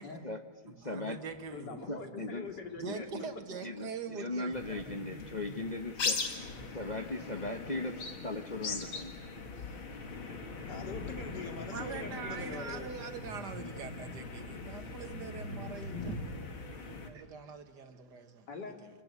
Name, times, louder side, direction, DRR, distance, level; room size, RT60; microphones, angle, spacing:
voice 1, 0.2-1.2 1.9-2.5 2.9-3.3 3.6-6.2 6.7-9.3, left 2 dB, 35° left, 0.7 m, -38 dB
voice 2, 0.8-2.3 2.8-5.0 6.5-6.8 11.7-18.5 18.8-18.9, right 5 dB, 55° right, 2.1 m, -44 dB
voice 3, 1.5-3.1 10.7-12.9 18.5-18.7, left 3 dB, 55° left, 3.0 m, -43 dB
sound 1, 4.5-17.1, left 4 dB, 75° left, 3.0 m, -40 dB
26.5 x 21.0 x 9.5 m
omnidirectional pair, 2.3 m